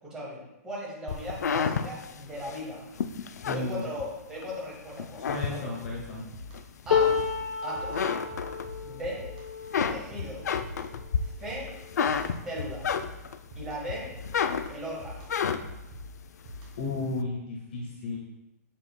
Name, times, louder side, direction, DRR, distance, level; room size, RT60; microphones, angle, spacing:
voice 1, 0.0-2.9 3.5-5.7 6.9-7.2 7.6-8.1 8.8-9.2 9.9-10.4 11.2-11.7 12.4-12.9 13.5-14.1 14.7-15.3, equal, 5° right, -5 dB, 1.4 m, -38 dB
sound 1, 1.1-4.5 4.9-6.0 6.5-7.5 7.8-9.1 9.4-13.5 13.9-15.9, left 7 dB, 70° left, 0.4 m, -31 dB
voice 2, 3.4-3.9 5.3-6.2 16.8-18.2, left 3 dB, 40° left, -3 dB, 1.3 m, -33 dB
sound 2, 5.8-17.0, left 1 dB, 25° right, 1.3 m, -45 dB
sound 3, 6.9-13.1 13.6-13.8 14.1-14.9 15.9-16.0, left 6 dB, 90° left, 1.1 m, -32 dB
7.3 x 6.2 x 2.2 m, 0.93 s
hypercardioid pair, 180°, 9 cm